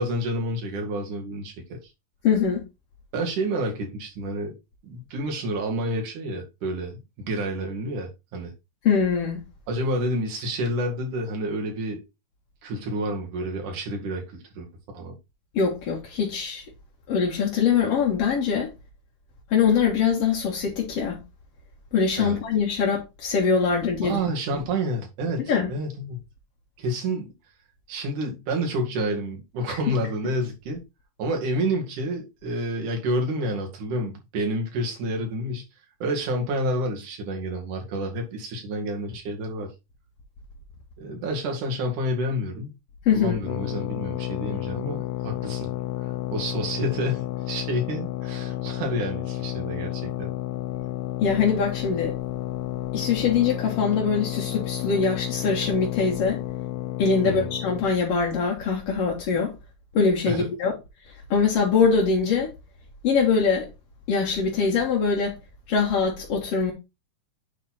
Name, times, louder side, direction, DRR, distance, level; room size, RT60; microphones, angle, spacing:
voice 1, 0.0-1.8 3.1-4.5 4.8-8.5 9.7-12.0 12.6-14.7 14.9-15.2 22.2-22.4 24.0-26.2 26.8-27.3 27.9-30.8 31.2-35.6 36.0-39.7 41.0-42.7 43.1-45.7 46.3-50.3 57.2-57.5 60.3-60.5, right 1 dB, 65° right, 3.4 m, -29 dB
voice 2, 2.2-2.6 8.8-9.4 15.5-16.7 17.1-18.7 19.5-21.2 21.9-24.2 25.5-25.7 29.7-29.9 43.1-43.4 51.2-52.2 52.9-56.4 57.0-59.5 59.9-60.7 61.1-62.5 63.0-63.7 64.1-65.4 65.7-66.7, left 5 dB, 55° left, 2.0 m, -23 dB
sound 1, 43.4-57.9, left 13 dB, 80° left, 2.3 m, -31 dB
9.1 x 4.2 x 4.1 m
omnidirectional pair, 4.1 m